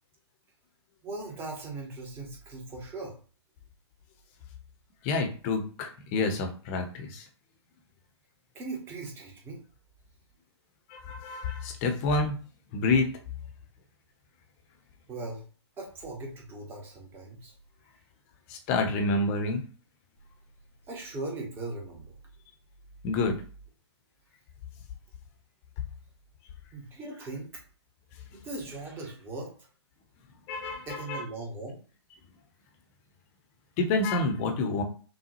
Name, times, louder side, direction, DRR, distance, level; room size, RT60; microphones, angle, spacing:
voice 1, 1.0-3.2 8.5-9.6 15.1-15.4 15.8-17.5 20.9-22.1 26.7-27.6 28.3-29.5 30.9-31.8, right 2 dB, 15° right, 0 dB, 1.0 m, -39 dB
voice 2, 5.0-7.3 10.9-12.4 12.7-13.1 18.5-19.6 23.0-23.4 30.5-31.2 33.8-34.8, left 3 dB, 25° left, 4 dB, 0.8 m, -28 dB
5.8 x 2.3 x 2.9 m, 0.39 s
figure-of-eight pair, 125°, 15 cm